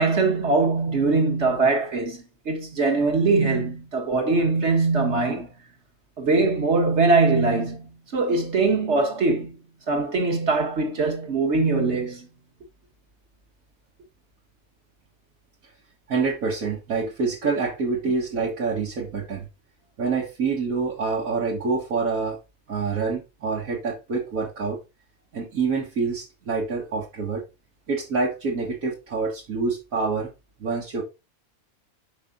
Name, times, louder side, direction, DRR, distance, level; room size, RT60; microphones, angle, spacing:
voice 1, 0.0-5.5 6.2-9.6 9.9-12.3, right 3 dB, 55° right, 1.9 m, -22 dB
voice 2, 16.1-19.5 20.0-22.4 22.7-24.8 25.3-27.4 27.9-30.3 30.6-31.0, right 4 dB, 80° right, 2.1 m, -26 dB
5.9 x 5.7 x 3.8 m
omnidirectional pair, 1.4 m